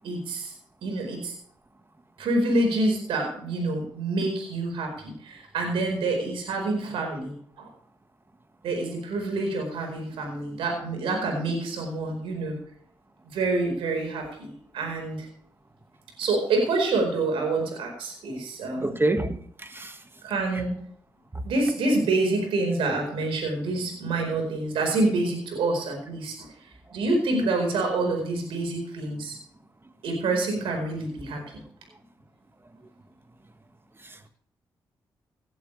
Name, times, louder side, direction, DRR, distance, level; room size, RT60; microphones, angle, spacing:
voice 1, 0.0-0.5 0.8-1.3 2.2-7.7 8.6-12.6 13.3-15.3 16.2-19.0 20.2-20.8 21.4-26.5 26.9-29.4 30.0-31.4, right 2 dB, 90° right, 3 dB, 4.7 m, -27 dB
voice 2, 18.8-20.1 20.5-20.6 21.3-21.4 26.9-27.0 31.5-31.6 34.0-34.2, right 2 dB, 25° right, 8 dB, 1.8 m, -29 dB
18.0 x 11.5 x 3.4 m, 0.62 s
supercardioid pair, 55°, 9 cm